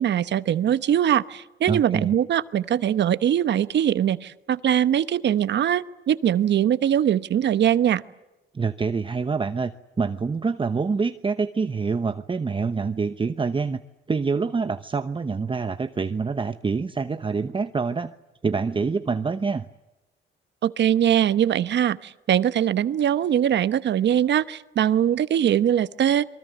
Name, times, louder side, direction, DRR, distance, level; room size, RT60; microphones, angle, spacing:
voice 1, 0.0-8.0 20.6-26.3, right 10 dB, 60° right, 14 dB, 1.1 m, -22 dB
voice 2, 1.7-2.2 8.5-13.8 14.1-18.1 18.4-19.7, right 4 dB, 25° right, 10 dB, 0.9 m, -26 dB
27.5 x 23.5 x 8.0 m, 1.0 s
cardioid pair, 90°, 20 cm